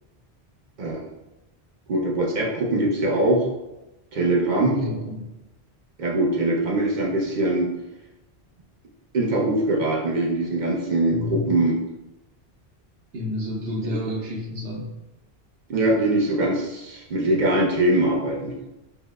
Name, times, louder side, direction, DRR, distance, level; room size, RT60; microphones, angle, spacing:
voice 1, 1.9-3.5 4.1-4.8 6.0-7.7 9.1-11.7 13.8-14.0 15.7-18.5, right 1 dB, 50° right, -2 dB, 0.7 m, -22 dB
voice 2, 4.7-5.3 11.1-11.5 13.1-14.9 18.6-18.7, left 1 dB, 75° right, -2 dB, 1.0 m, -30 dB
5.4 x 2.1 x 2.2 m, 0.97 s
omnidirectional pair, 1.1 m